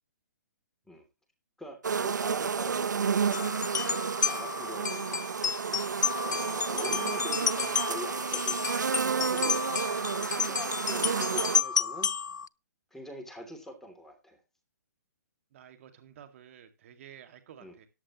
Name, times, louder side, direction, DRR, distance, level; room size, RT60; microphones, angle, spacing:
voice 1, 1.6-3.6 4.2-5.3 6.2-9.0 9.3-9.7 10.1-12.1 12.9-14.4 17.6-17.7, left 1 dB, 5° left, 2.9 m, -44 dB
sound 1, 1.8-11.6, right 6 dB, 85° right, 0.9 m, -31 dB
sound 2, 3.3-12.5, left 6 dB, 85° left, 0.6 m, -31 dB
voice 2, 15.5-17.9, right 10 dB, 50° right, 2.1 m, -52 dB
14.0 x 11.5 x 3.0 m
hypercardioid pair, 145°, 9 cm